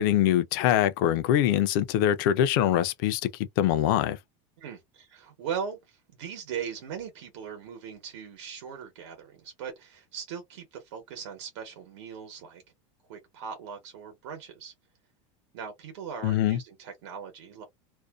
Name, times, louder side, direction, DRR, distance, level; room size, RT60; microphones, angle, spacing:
voice 1, 0.0-3.2 3.6-4.2 16.2-16.6, left 11 dB, 45° left, 0.4 m, -23 dB
voice 2, 4.6-12.6 13.1-14.7 15.5-17.6, right 7 dB, 70° right, 1.0 m, -39 dB
2.5 x 2.1 x 2.3 m
supercardioid pair, 175°, 16 cm